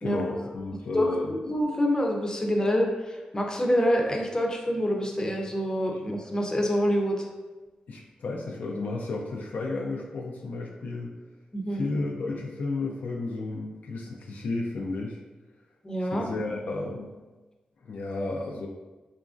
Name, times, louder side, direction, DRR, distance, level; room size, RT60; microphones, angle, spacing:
voice 1, 0.0-1.3 7.9-11.1 11.7-15.2 16.1-17.1 17.8-18.7, left 3 dB, 70° left, -1 dB, 0.3 m, -32 dB
voice 2, 0.9-7.3 11.5-11.9 15.8-16.3, equal, 25° left, 1 dB, 0.6 m, -26 dB
2.9 x 2.4 x 2.4 m, 1.2 s
supercardioid pair, 45°, 3 cm